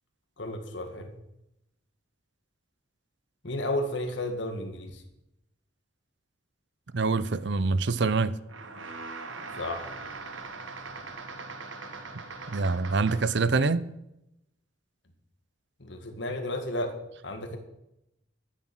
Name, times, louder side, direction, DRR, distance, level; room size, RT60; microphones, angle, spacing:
voice 1, 0.4-1.2 3.4-5.0 9.5-9.9 15.8-16.9 17.2-17.6, left 1 dB, 65° left, 2.0 m, -33 dB
voice 2, 6.9-8.4 12.5-13.8, right 4 dB, 65° right, 0.6 m, -25 dB
sound 1, 8.5-13.5, right 3 dB, 80° right, 1.6 m, -41 dB
12.0 x 10.0 x 6.2 m
head